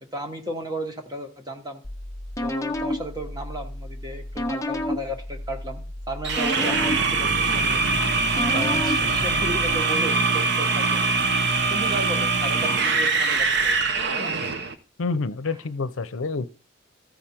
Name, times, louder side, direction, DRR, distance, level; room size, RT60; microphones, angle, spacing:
voice 1, 0.0-1.8 2.4-7.8 8.5-11.0 11.7-14.3 15.5-15.6, right 1 dB, 20° right, 1.3 m, -34 dB
sound 1, 1.8-9.7, left 1 dB, 15° left, 0.7 m, -31 dB
sound 2, 6.2-14.7, right 4 dB, 55° right, 0.8 m, -23 dB
voice 2, 15.0-16.4, left 4 dB, 85° left, 0.6 m, -28 dB
14.5 x 5.0 x 4.4 m
head